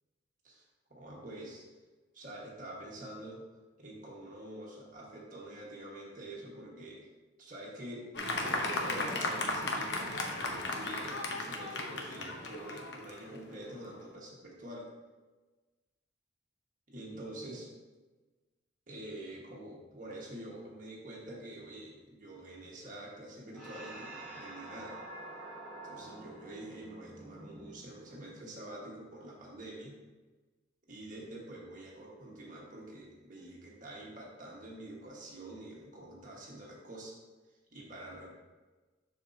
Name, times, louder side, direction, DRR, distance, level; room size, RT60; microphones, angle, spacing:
voice 1, 0.9-1.6 2.1-3.4 3.8-7.0 7.4-8.1 8.4-14.9 16.9-17.7 18.9-25.0 25.8-30.0 30.9-37.1 37.7-38.3, right 1 dB, 45° right, -3 dB, 1.6 m, -46 dB
Fireworks, 8.1-13.9, left 2 dB, 65° left, 0.9 m, -35 dB
sound 1, 23.5-28.3, right 2 dB, 5° left, 2.1 m, -47 dB
7.3 x 6.2 x 2.8 m, 1.2 s
head